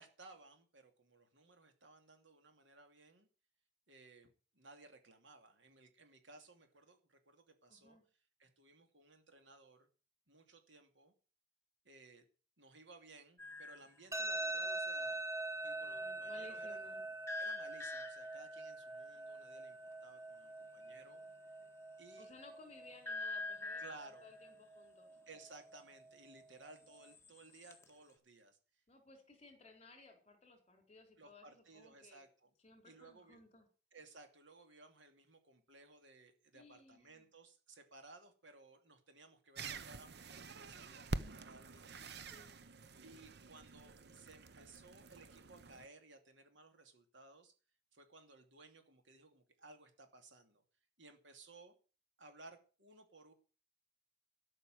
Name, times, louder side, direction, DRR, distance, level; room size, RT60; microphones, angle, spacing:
voice 1, 0.0-3.3 3.9-8.0 8.4-9.9 10.3-11.1 11.8-12.2 12.6-15.3 15.6-16.8 17.4-21.2 22.0-22.3 23.8-24.3 25.3-28.8 31.2-32.5 32.8-33.4 33.9-42.2 42.6-42.7 43.0-47.6 47.9-50.6 51.0-51.7 52.2-53.3, right 3 dB, 80° right, 6 dB, 2.7 m, -59 dB
voice 2, 7.7-8.0 15.8-17.0 22.2-25.1 28.9-32.3 32.6-33.7 36.5-37.3 42.3-42.6, left 3 dB, 35° left, 5 dB, 4.3 m, -60 dB
sound 1, 13.4-13.9 17.3-18.5 23.1-24.2 26.9-27.9, left 3 dB, 15° left, 1.7 m, -44 dB
sound 2, 14.1-27.1, right 2 dB, 15° right, 1.3 m, -45 dB
sound 3, 39.6-45.9, right 3 dB, 60° right, 0.9 m, -47 dB
13.0 x 6.4 x 9.2 m, 0.37 s
head